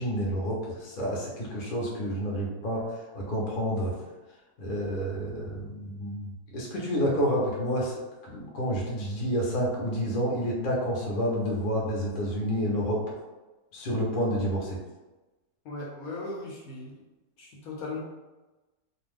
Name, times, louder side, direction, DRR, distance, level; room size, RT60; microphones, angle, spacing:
voice 1, 0.0-3.9 4.6-13.0 13.7-14.8, equal, 45° left, -4 dB, 0.7 m, -29 dB
voice 2, 15.6-17.0 17.4-18.0, left 2 dB, 70° left, -4 dB, 1.0 m, -38 dB
2.6 x 2.3 x 3.4 m, 1.1 s
omnidirectional pair, 1.7 m